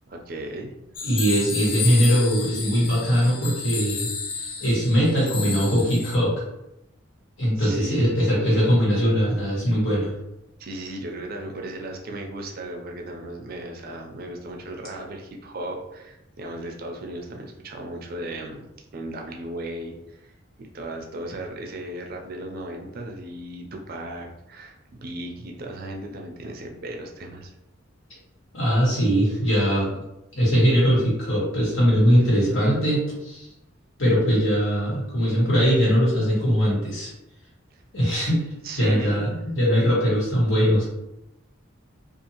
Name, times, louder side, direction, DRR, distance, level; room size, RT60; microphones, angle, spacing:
voice 1, 0.1-0.7 7.6-8.2 10.6-20.3 20.6-27.5 37.7-37.8 38.6-39.3, right 1 dB, 50° right, 2 dB, 0.4 m, -36 dB
sound 1, 0.9-6.2, left 5 dB, 45° left, 0.5 m, -32 dB
voice 2, 1.0-4.1 4.6-6.4 7.4-10.1 28.5-29.9 30.3-33.5 34.0-37.1 37.9-38.5 38.8-40.8, equal, 90° left, -6 dB, 1.4 m, -21 dB
2.6 x 2.4 x 2.9 m, 0.90 s
head